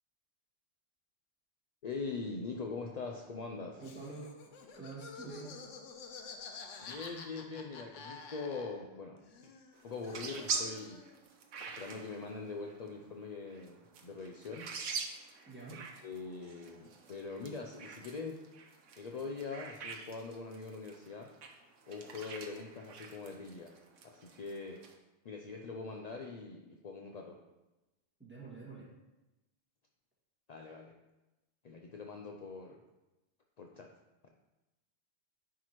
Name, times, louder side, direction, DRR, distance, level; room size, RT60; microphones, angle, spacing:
voice 1, 1.8-3.8 6.8-9.5 9.8-11.0 11.8-14.7 15.7-18.4 19.0-21.3 21.9-23.8 24.0-24.8 25.2-27.4 30.5-31.0 31.6-32.8 33.6-33.9 34.2-34.3, left 4 dB, 55° left, 2 dB, 0.4 m, -43 dB
Laughter, 3.8-9.0 9.2-11.2, left 5 dB, 75° left, 1.1 m, -49 dB
voice 2, 3.8-4.4 4.7-5.6 15.5-15.9 28.2-28.9, right 3 dB, 10° right, -7 dB, 1.9 m, -46 dB
sound 1, 9.7-24.9, right 5 dB, 80° right, 1.1 m, -45 dB
9.7 x 4.8 x 3.0 m, 1.0 s
omnidirectional pair, 1.3 m